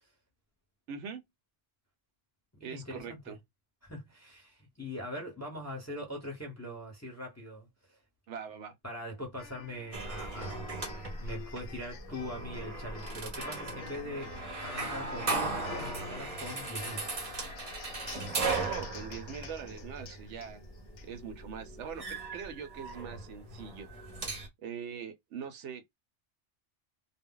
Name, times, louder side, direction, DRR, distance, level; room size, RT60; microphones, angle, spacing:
voice 1, 0.9-1.2 2.6-3.4 8.3-8.7 18.5-20.7 21.0-23.9 24.6-25.9, right 7 dB, 75° right, 0.9 m, -42 dB
voice 2, 2.6-3.4 3.8-8.0 8.8-10.7 11.2-14.3 14.6-17.1, equal, 15° left, 0.7 m, -42 dB
sound 1, 9.4-21.1, left 8 dB, 80° left, 0.9 m, -49 dB
sound 2, 9.9-24.5, right 3 dB, 40° right, 0.6 m, -38 dB
2.2 x 2.0 x 3.6 m
omnidirectional pair, 1.2 m